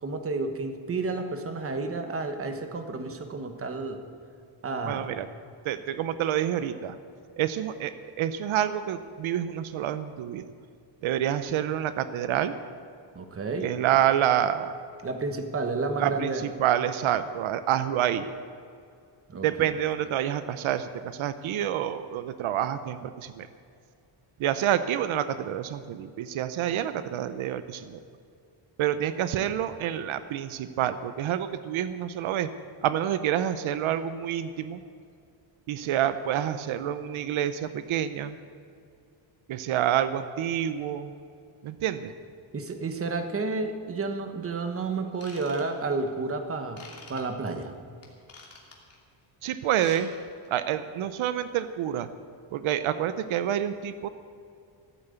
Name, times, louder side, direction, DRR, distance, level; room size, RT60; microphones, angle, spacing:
voice 1, 0.0-4.0 4.6-5.1 13.1-13.7 15.0-16.4 19.3-19.7 42.5-46.8 47.1-47.7, right 3 dB, 30° right, 6 dB, 1.2 m, -31 dB
voice 2, 4.8-5.3 5.6-7.0 7.4-10.5 11.0-12.5 13.6-14.7 16.0-18.3 19.4-23.5 24.4-28.0 28.8-32.5 32.8-34.8 35.7-38.3 39.5-41.1 41.6-42.1 49.4-50.1 50.5-52.1 52.5-54.1, right 10 dB, 85° right, 12 dB, 0.8 m, -28 dB
Ratchet pawl / Tools, 45.1-46.1 46.8-47.2 48.0-48.9 49.6-50.0 50.3-50.5 51.0-51.1, left 4 dB, 30° left, 2.5 m, -47 dB
14.5 x 9.0 x 8.1 m, 2.4 s
wide cardioid pair, 155°, 47 cm